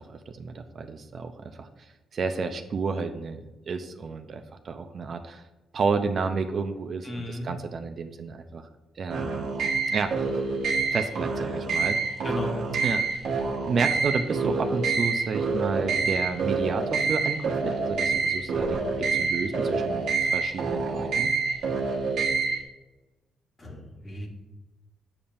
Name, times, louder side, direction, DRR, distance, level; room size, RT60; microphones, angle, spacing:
voice 1, 0.0-5.4 5.7-8.7 9.0-9.5 9.9-10.3 10.9-12.0 12.8-13.2 13.7-21.3, right 4 dB, 50° right, 7 dB, 0.5 m, -31 dB
voice 2, 7.0-7.5 12.2-12.6 23.6-24.3, left 1 dB, 30° left, 2 dB, 1.3 m, -34 dB
sound 1, 9.1-22.6, right 4 dB, 75° right, 1.2 m, -27 dB
7.0 x 6.8 x 2.6 m, 1.1 s
cardioid pair, 90°, 0 cm